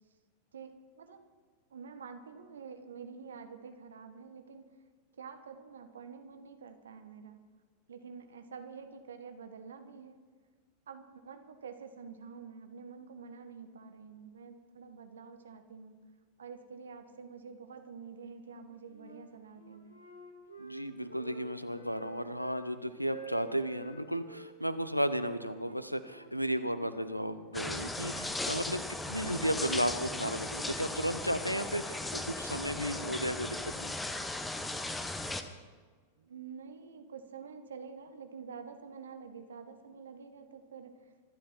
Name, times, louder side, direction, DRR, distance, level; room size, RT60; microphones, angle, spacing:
voice 1, 0.5-1.3 1.7-4.7 5.2-7.4 7.9-10.2 10.9-16.0 16.4-20.0 36.2-41.1, right 6 dB, 65° right, 8 dB, 1.5 m, -48 dB
Wind instrument woodwind instrument, 18.4-19.2 19.5-22.6 23.0-24.5 25.0-27.5, right 4 dB, 90° right, 2.8 m, -50 dB
voice 2, 20.6-33.9, equal, 90° left, 13 dB, 0.9 m, -34 dB
sound 1, 27.5-35.4, left 2 dB, 10° left, 1.3 m, -37 dB
26.0 x 12.0 x 4.5 m, 1.5 s
figure-of-eight pair, 90°, 0 cm